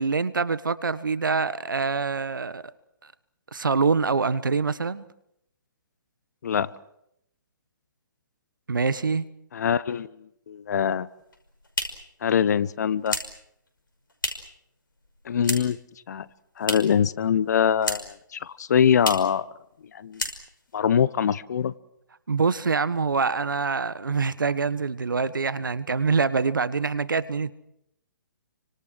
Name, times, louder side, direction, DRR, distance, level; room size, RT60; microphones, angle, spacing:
voice 1, 0.0-2.6 3.5-5.0 8.7-9.2 22.3-27.5, right 4 dB, 75° right, 16 dB, 1.5 m, -25 dB
voice 2, 9.5-11.1 12.2-13.2 15.2-15.8 16.1-16.3 16.6-19.5 19.9-20.2 20.7-21.7, left 8 dB, 55° left, 18 dB, 1.0 m, -23 dB
sound 1, 11.2-14.6 14.9-15.9 16.1-17.1 17.3-18.3 18.5-18.6 19.0-19.4 19.7-19.9 20.1-20.8, left 2 dB, 80° left, 5.5 m, -33 dB
29.5 x 25.0 x 6.3 m, 0.77 s
figure-of-eight pair, 130°, 11 cm